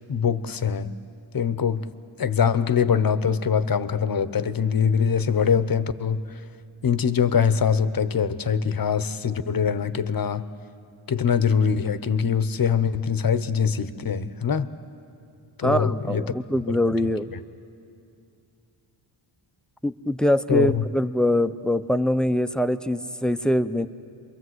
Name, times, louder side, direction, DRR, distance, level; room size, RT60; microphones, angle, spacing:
voice 1, 0.1-0.9 1.3-1.8 2.2-6.2 6.8-10.4 11.1-14.7 15.6-16.2 16.7-16.8 20.5-20.8, left 7 dB, 45° left, 13 dB, 0.9 m, -23 dB
voice 2, 15.6-17.3 19.8-23.9, left 1 dB, ahead, 11 dB, 0.6 m, -23 dB
28.5 x 23.0 x 8.0 m, 2.5 s
wide cardioid pair, 105°, 49 cm